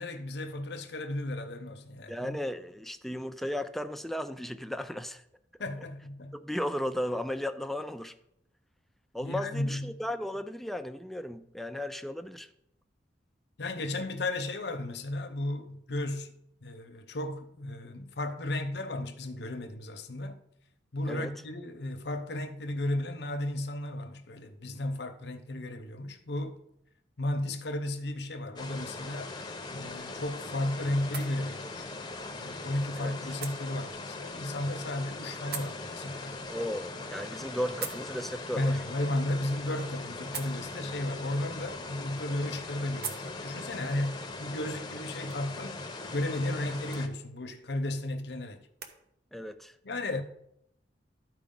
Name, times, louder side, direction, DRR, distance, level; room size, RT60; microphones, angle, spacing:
voice 1, 0.0-2.4 5.6-6.4 9.2-10.0 13.6-16.3 16.6-20.4 20.9-26.6 27.2-29.3 29.7-31.9 32.4-36.4 38.5-45.8 46.1-48.7 49.8-50.2, left 1 dB, 65° left, 0.8 m, -34 dB
voice 2, 2.1-5.2 6.3-8.1 9.1-12.5 21.1-21.3 33.0-33.1 36.5-38.8 49.3-49.8, left 1 dB, ahead, 0.4 m, -35 dB
sound 1, 28.6-47.1, left 3 dB, 25° left, 0.8 m, -40 dB
sound 2, 29.5-49.0, right 6 dB, 60° right, 0.9 m, -48 dB
13.0 x 4.7 x 3.8 m
head